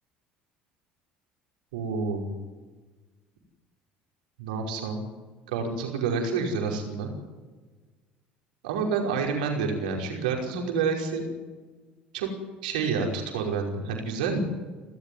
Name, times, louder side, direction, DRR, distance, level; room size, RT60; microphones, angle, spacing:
voice 1, 1.7-2.3 4.4-5.1 5.5-7.1 8.6-11.2 12.1-12.3 12.6-14.4, right 5 dB, 70° right, 1 dB, 5.4 m, -28 dB
29.5 x 14.0 x 9.7 m, 1.3 s
figure-of-eight pair, 60°, 5 cm